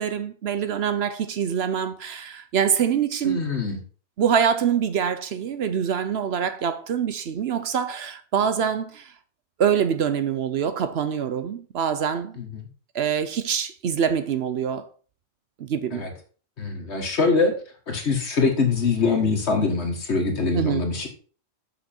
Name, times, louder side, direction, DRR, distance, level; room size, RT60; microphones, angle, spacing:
voice 1, 0.0-3.4 4.2-9.1 9.6-12.4 12.9-14.9 15.6-16.1 20.5-20.8, right 8 dB, 65° right, 0.9 m, -25 dB
voice 2, 3.2-3.8 12.4-12.6 15.9-16.1 16.6-17.5 17.9-21.1, left 4 dB, 65° left, 1.8 m, -23 dB
7.4 x 5.9 x 4.3 m
omnidirectional pair, 1.3 m